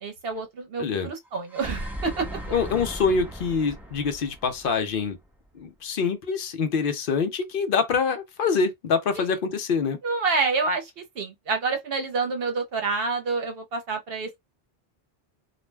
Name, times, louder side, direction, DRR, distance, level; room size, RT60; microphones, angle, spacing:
voice 1, 0.0-2.4 9.1-9.2 10.0-14.4, right 4 dB, 65° right, 0.9 m, -28 dB
voice 2, 0.8-1.1 2.5-5.2 5.5-10.0, left 5 dB, 60° left, 0.7 m, -25 dB
sound 1, 1.3-5.4, right 1 dB, ahead, 0.4 m, -37 dB
2.4 x 2.1 x 3.2 m
omnidirectional pair, 1.1 m